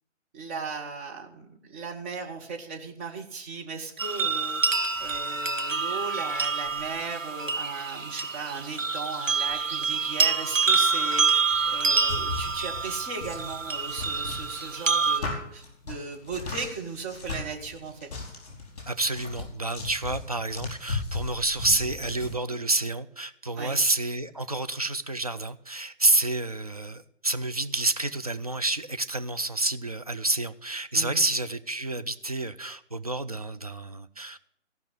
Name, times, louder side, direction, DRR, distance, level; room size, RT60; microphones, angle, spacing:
voice 1, 0.3-18.1 23.6-23.8 30.9-31.3, right 4 dB, 10° right, 0 dB, 0.7 m, -37 dB
sound 1, 4.0-15.2, right 4 dB, 80° right, 1.1 m, -27 dB
sound 2, 11.5-22.3, left 3 dB, 50° left, 4.7 m, -37 dB
voice 2, 18.9-34.4, right 2 dB, 35° right, 8 dB, 0.4 m, -29 dB
14.5 x 5.8 x 8.0 m, 0.73 s
figure-of-eight pair, 140°, 38 cm